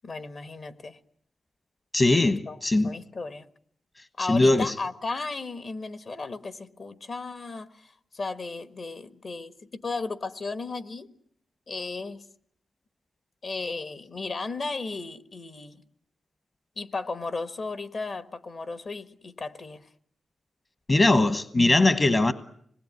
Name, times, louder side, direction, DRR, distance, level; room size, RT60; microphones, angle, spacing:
voice 1, 0.0-1.0 2.5-3.5 4.2-11.1 11.7-12.2 13.4-15.8 16.8-19.9, left 3 dB, 55° left, 1.5 m, -35 dB
voice 2, 1.9-2.9 4.3-4.7 20.9-22.3, left 2 dB, 40° left, 1.2 m, -20 dB
25.5 x 20.0 x 9.6 m
cardioid pair, 85°, 0 cm